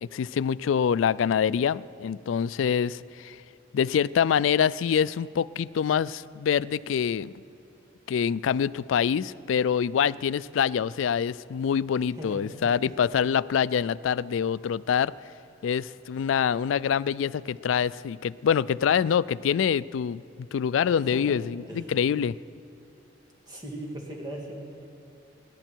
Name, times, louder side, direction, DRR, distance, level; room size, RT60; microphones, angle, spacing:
voice 1, 0.0-3.4 3.7-7.3 8.1-15.1 15.6-20.2 20.5-22.4, left 7 dB, 80° left, 19 dB, 0.3 m, -25 dB
voice 2, 12.1-12.4 12.8-13.0 21.0-21.4 21.7-21.9 23.5-24.9, right 1 dB, 20° right, -1 dB, 2.5 m, -39 dB
27.0 x 11.5 x 4.6 m, 2.7 s
head